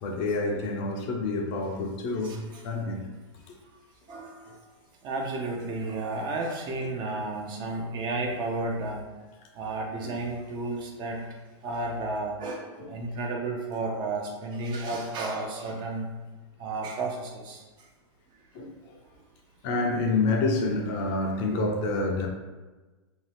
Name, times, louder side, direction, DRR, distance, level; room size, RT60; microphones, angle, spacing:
voice 1, 0.0-3.1 10.0-10.2 12.8-12.9 18.5-19.0 19.6-22.3, left 3 dB, 40° left, 0.5 m, -28 dB
voice 2, 2.2-2.6 4.1-4.6 5.0-9.0 9.5-11.3 11.6-16.1 16.6-17.6, right 2 dB, 30° right, 0.5 m, -32 dB
2.7 x 2.3 x 3.3 m
hypercardioid pair, 135°, 16 cm